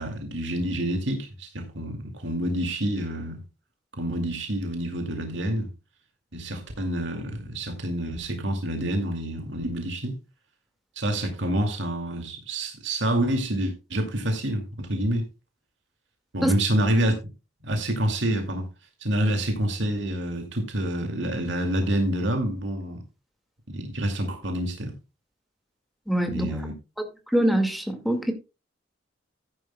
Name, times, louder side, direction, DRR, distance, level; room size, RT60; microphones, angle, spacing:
voice 1, 0.0-3.4 3.9-5.7 6.3-10.2 11.0-15.3 16.3-17.1 17.6-18.7 19.0-23.0 23.7-24.9 26.3-26.7, right 1 dB, 75° right, 2.5 m, -27 dB
voice 2, 26.1-26.5 27.3-28.3, right 1 dB, ahead, 2.0 m, -23 dB
14.0 x 10.5 x 2.3 m
head